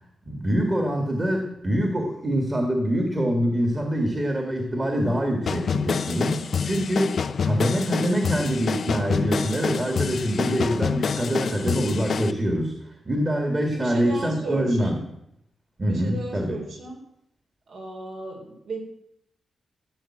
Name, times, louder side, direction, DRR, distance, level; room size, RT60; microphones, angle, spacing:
voice 1, 0.3-15.0 15.8-16.6, equal, 20° right, 3 dB, 1.9 m, -25 dB
sound 1, 5.5-12.3, left 6 dB, 50° left, 0.6 m, -27 dB
voice 2, 13.7-15.0 15.8-17.0 17.7-18.8, right 3 dB, 70° right, 2 dB, 4.1 m, -35 dB
15.5 x 6.9 x 8.7 m, 0.77 s
wide cardioid pair, 165°, 0 cm